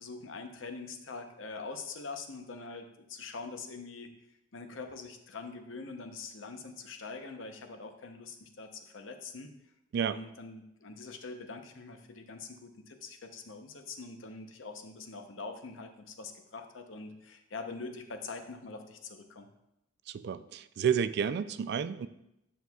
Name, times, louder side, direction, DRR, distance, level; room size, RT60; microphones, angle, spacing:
voice 1, 0.0-4.1 4.5-9.5 10.0-19.5, left 4 dB, 90° left, 6 dB, 0.7 m, -44 dB
voice 2, 20.1-22.1, right 7 dB, 60° right, 13 dB, 0.3 m, -30 dB
9.2 x 6.2 x 2.3 m, 0.86 s
head